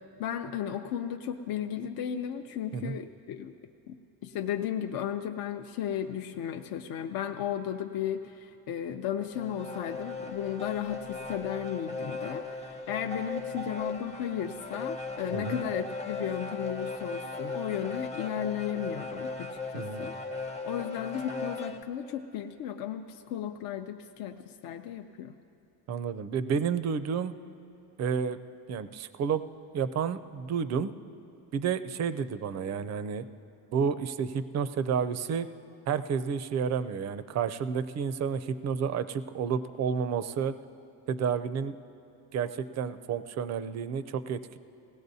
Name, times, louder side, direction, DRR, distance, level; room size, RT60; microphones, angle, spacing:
voice 1, 0.2-3.5 3.9-4.0 4.2-20.1 20.7-25.4, left 9 dB, 60° left, 5 dB, 0.6 m, -35 dB
sound 1, 9.2-21.8, left 3 dB, 15° left, 0.6 m, -37 dB
voice 2, 19.7-20.1 25.9-27.3 28.0-28.4 28.7-29.4 29.7-30.9 31.5-33.2 33.7-35.5 35.9-40.5 41.1-41.7 42.3-44.6, right 6 dB, 40° right, 13 dB, 0.4 m, -30 dB
19.5 x 17.0 x 2.7 m, 2.7 s
cardioid pair, 135°, 42 cm